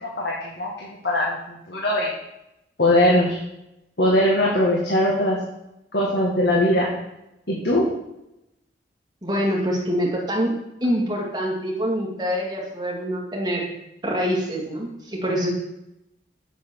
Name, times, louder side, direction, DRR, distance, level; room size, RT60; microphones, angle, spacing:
voice 1, 0.0-2.1 2.8-3.4 4.0-5.4 5.9-6.9 7.5-7.8, left 1 dB, 75° left, -3 dB, 1.8 m, -21 dB
voice 2, 9.2-10.5 10.8-13.7 14.0-15.5, equal, 25° right, -2 dB, 2.2 m, -25 dB
7.8 x 7.1 x 6.1 m, 0.87 s
head